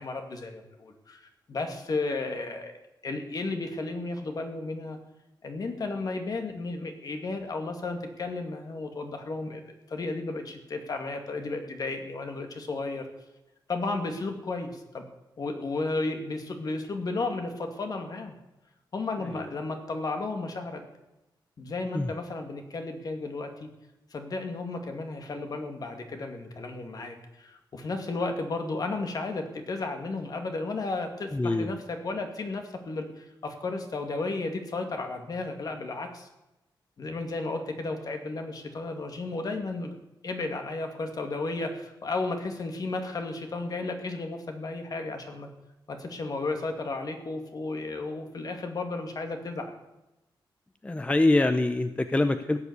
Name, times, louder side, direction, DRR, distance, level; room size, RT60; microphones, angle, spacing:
voice 1, 0.0-2.7 3.0-5.0 5.4-9.6 9.9-13.1 13.7-15.0 15.4-18.4 18.9-20.8 21.6-23.7 24.1-36.3 37.0-40.0 40.2-45.5 45.9-49.7, left 3 dB, 50° left, 5 dB, 2.4 m, -33 dB
voice 2, 31.3-31.7 50.8-52.6, left 2 dB, 15° left, 9 dB, 0.7 m, -24 dB
16.0 x 10.0 x 8.1 m, 0.96 s
wide cardioid pair, 140°, 8 cm